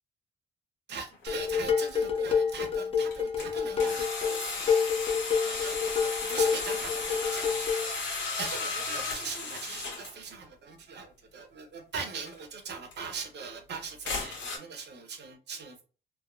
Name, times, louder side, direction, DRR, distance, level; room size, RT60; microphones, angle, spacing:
voice 1, 0.9-4.8 5.4-15.8, right 5 dB, 60° right, 0.9 m, -41 dB
sound 1, 1.1-1.2 1.9-2.0 3.0-3.5 3.8-10.1 12.3-12.4 12.9-13.0 14.1-14.6, left 4 dB, 70° left, 1.1 m, -35 dB
Dishes pots and pans, 1.3-7.9, left 6 dB, 30° left, 0.8 m, -28 dB
3.4 x 2.0 x 2.4 m
cardioid pair, 90°, 20 cm